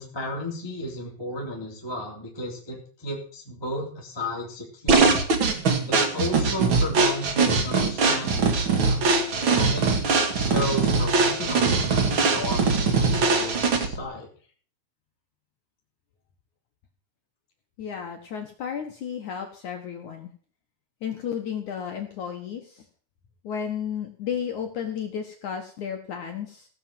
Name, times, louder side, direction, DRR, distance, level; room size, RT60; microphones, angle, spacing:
voice 1, 0.0-5.1 5.9-9.0 9.5-10.0 10.3-14.3, left 1 dB, 5° left, -2 dB, 2.6 m, -33 dB
sound 1, 4.9-14.0, right 4 dB, 70° right, 1.2 m, -22 dB
voice 2, 17.8-20.3 21.0-22.6 23.4-26.7, left 8 dB, 65° left, 4 dB, 2.0 m, -33 dB
17.0 x 6.7 x 7.7 m, 0.43 s
omnidirectional pair, 5.2 m